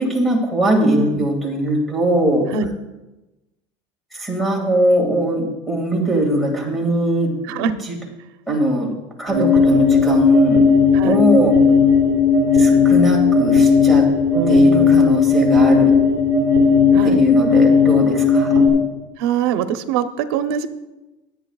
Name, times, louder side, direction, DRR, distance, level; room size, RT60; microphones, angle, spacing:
voice 1, 0.0-2.5 4.1-7.9 8.5-8.9 9.2-10.7 11.0-11.5 12.5-14.1 14.5-15.9 17.0-18.5, right 1 dB, ahead, 0 dB, 2.1 m, -20 dB
voice 2, 0.8-1.2 2.5-2.7 6.0-6.2 7.5-7.7 10.9-11.2 14.3-15.2 16.9-17.2 19.2-20.7, right 7 dB, 85° right, 9 dB, 0.8 m, -23 dB
sound 1, 9.3-18.7, left 5 dB, 30° right, 3.5 m, -15 dB
21.5 x 8.2 x 2.4 m, 1.0 s
cardioid pair, 165°, 12 cm